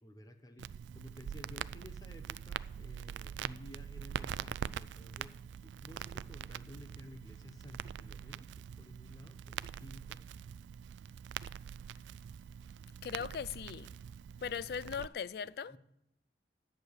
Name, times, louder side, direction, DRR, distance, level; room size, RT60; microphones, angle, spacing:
voice 1, 0.0-10.2 15.7-15.8, equal, 20° left, 0.8 m, -54 dB
Crackle, 0.6-15.1, right 8 dB, 90° right, 0.3 m, -44 dB
voice 2, 13.0-14.0 14.4-15.8, left 7 dB, 60° left, 0.3 m, -39 dB
11.0 x 6.6 x 8.3 m
head